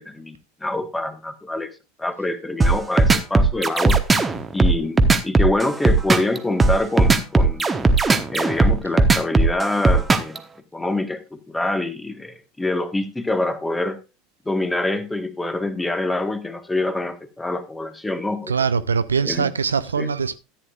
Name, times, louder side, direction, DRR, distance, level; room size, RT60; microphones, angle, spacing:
voice 1, 0.0-1.7 2.0-4.0 4.5-7.7 8.3-10.4 10.7-14.0 14.4-18.6 19.2-19.5 20.0-20.1, left 2 dB, 10° left, 1.4 m, -25 dB
sound 1, 2.6-10.4, right 3 dB, 15° right, 1.1 m, -17 dB
voice 2, 18.5-20.4, right 5 dB, 75° right, 0.4 m, -22 dB
14.0 x 9.4 x 2.4 m
figure-of-eight pair, 75°, 0 cm